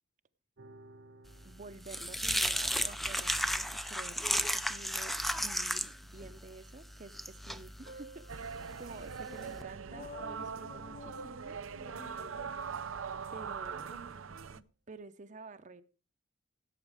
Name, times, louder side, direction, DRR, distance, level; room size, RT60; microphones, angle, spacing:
sound 1, 0.6-7.2 7.8-10.9, right 3 dB, 60° right, 1.0 m, -58 dB
sound 2, 1.4-9.6, equal, ahead, 0.5 m, -35 dB
voice 1, 1.4-11.6 13.3-13.9 14.9-15.8, right 3 dB, 40° right, 0.7 m, -50 dB
sound 3, 8.3-14.6, right 6 dB, 85° right, 0.7 m, -42 dB
voice 2, 9.9-11.3 11.7-12.5 13.9-14.2 14.5-14.6, left 3 dB, 30° left, 1.5 m, -51 dB
17.0 x 8.3 x 4.9 m
head